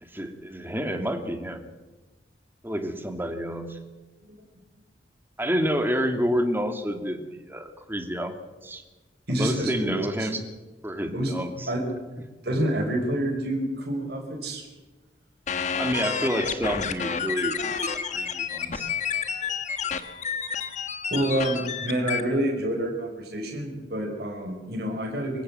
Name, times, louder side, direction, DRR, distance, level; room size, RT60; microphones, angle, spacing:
voice 1, 0.0-1.7 2.6-3.8 5.4-8.3 8.6-8.8 9.3-10.5 10.8-11.7 15.7-18.9, equal, 10° right, 6 dB, 2.2 m, -29 dB
voice 2, 9.3-10.3 11.1-11.3 11.7-11.8 12.4-14.7 21.1-25.4, right 1 dB, 60° right, 0 dB, 5.2 m, -28 dB
sound 1, 15.5-22.2, left 6 dB, 40° left, 1.4 m, -30 dB
25.5 x 15.5 x 7.7 m, 1.2 s
head